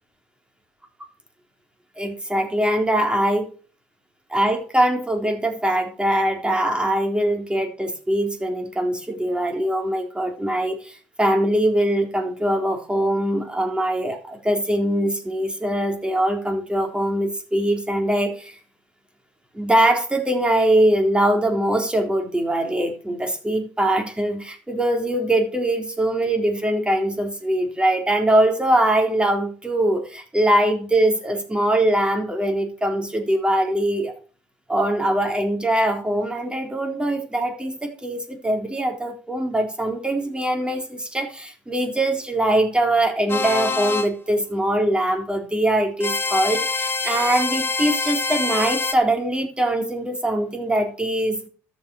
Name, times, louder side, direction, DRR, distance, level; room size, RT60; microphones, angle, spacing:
voice 1, 2.0-3.5 4.3-18.5 19.5-34.1 34.7-51.5, right 1 dB, 10° right, 3 dB, 3.8 m, -22 dB
sound 1, 43.3-44.1 46.0-48.9, left 4 dB, 25° left, 1.7 m, -25 dB
13.0 x 7.6 x 6.4 m, 0.40 s
hypercardioid pair, 65°, 9 cm